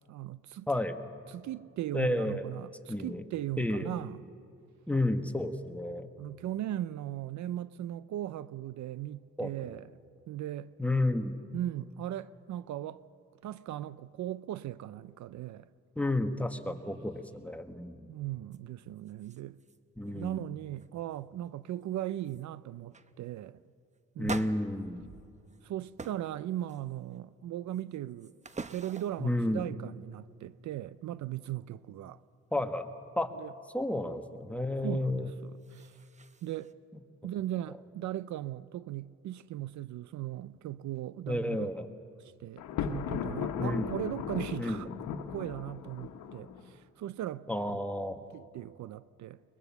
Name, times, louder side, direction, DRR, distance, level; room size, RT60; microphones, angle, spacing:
voice 1, 0.1-0.7 1.3-4.2 6.2-9.9 10.3-10.7 11.5-13.1 13.4-15.7 18.1-19.6 20.0-23.6 24.2-24.4 25.6-28.3 28.7-32.2 33.4-33.5 34.8-36.0 36.4-36.7 37.2-41.7 42.2-44.9 45.3-47.8 48.3-49.4, right 13 dB, 70° right, 0.6 m, -38 dB
voice 2, 0.7-1.0 1.9-2.5 2.9-3.2 3.6-3.9 4.9-6.1 9.4-9.8 10.8-11.4 16.0-18.1 20.0-20.4 24.2-25.0 29.2-29.7 32.5-32.9 33.2-33.3 33.7-35.3 41.3-41.9 43.6-43.9 44.6-44.9 47.5-48.2, left 1 dB, 5° left, 1.5 m, -31 dB
sound 1, 18.5-18.6 19.0-19.8 20.0-20.4 20.8-21.2 21.8-21.9 22.2-22.5 22.9-23.1 24.2-25.6 26.0-26.3 26.7-27.2 27.7-29.3 35.3-36.7, right 4 dB, 25° right, 0.9 m, -45 dB
Thunder, 42.6-46.7, left 8 dB, 85° left, 1.4 m, -37 dB
22.5 x 21.0 x 7.1 m
cardioid pair, 90°, 30 cm